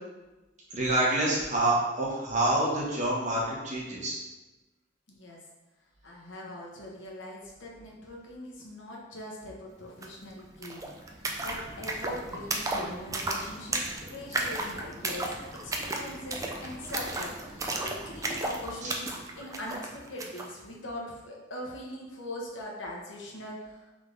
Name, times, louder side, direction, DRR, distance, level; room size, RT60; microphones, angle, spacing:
voice 1, 0.7-4.2 18.8-18.9, right 1 dB, 40° right, -5 dB, 1.3 m, -27 dB
voice 2, 5.1-5.4 6.0-23.9, left 1 dB, 85° left, -3 dB, 1.0 m, -41 dB
sound 1, 10.0-10.1 10.3-20.5, right 2 dB, 20° right, 0.4 m, -34 dB
3.7 x 3.5 x 3.9 m, 1.1 s
head